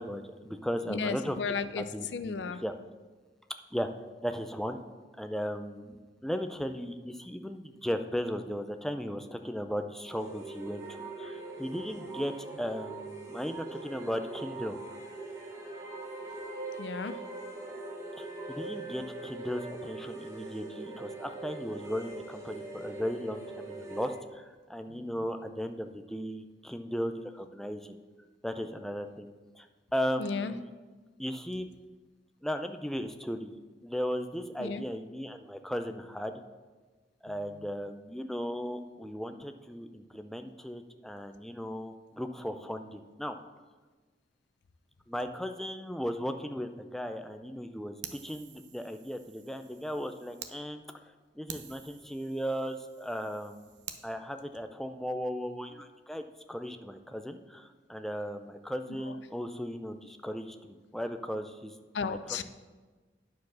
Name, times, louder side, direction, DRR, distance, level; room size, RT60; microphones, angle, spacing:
voice 1, 0.0-1.4 1.8-2.3 2.6-2.7 3.7-3.9 4.2-4.8 5.2-6.0 6.2-14.8 18.2-28.0 28.4-29.3 29.6-29.7 29.9-30.7 31.2-31.7 32.4-33.5 33.8-36.4 37.2-43.4 45.1-50.8 51.4-53.7 54.0-61.7 62.1-62.2, equal, ahead, 7 dB, 0.4 m, -36 dB
voice 2, 0.9-2.6 16.8-17.2 24.9-25.2 30.2-30.5 34.6-34.8 37.3-37.7 58.9-59.2 61.9-62.4, left 5 dB, 85° left, 11 dB, 0.5 m, -35 dB
sound 1, 10.0-24.2, right 2 dB, 15° right, 1.1 m, -42 dB
Fire, 48.0-50.5 51.0-51.1 51.5-54.0, right 8 dB, 90° right, 0.7 m, -48 dB
9.5 x 4.7 x 6.2 m, 1.3 s
head